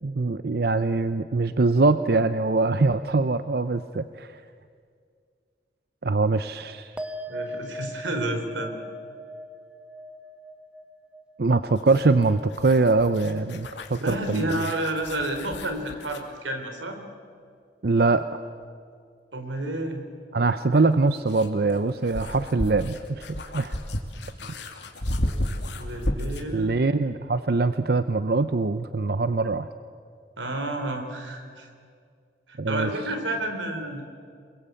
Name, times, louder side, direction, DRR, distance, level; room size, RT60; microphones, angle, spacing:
voice 1, 0.0-4.3 6.0-6.9 11.4-14.5 17.8-18.2 20.3-23.3 23.5-23.7 26.5-29.7 32.6-32.9, right 3 dB, 55° right, 11 dB, 0.6 m, -23 dB
sound 1, 7.0-13.7 13.9-14.6, equal, 5° right, 1.1 m, -40 dB
voice 2, 7.3-8.8 14.0-17.0 19.3-20.1 25.8-26.7 30.4-31.7 32.5-34.1, right 1 dB, 90° right, 6 dB, 3.9 m, -30 dB
sound 2, 11.8-16.3 18.6-18.7 20.7-26.5, left 1 dB, 75° left, 2.6 m, -33 dB
27.5 x 22.0 x 8.4 m, 2.2 s
head